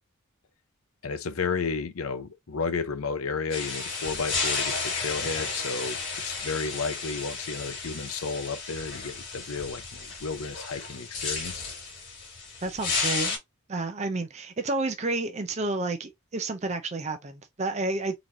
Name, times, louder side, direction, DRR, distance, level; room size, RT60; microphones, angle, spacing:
voice 1, 1.0-11.7, left 4 dB, 80° left, 0.6 m, -32 dB
sound 1, 3.5-13.4, left 4 dB, 55° left, 2.4 m, -33 dB
voice 2, 12.6-13.4 13.7-18.2, right 2 dB, 30° right, 0.5 m, -30 dB
3.9 x 3.1 x 2.7 m
head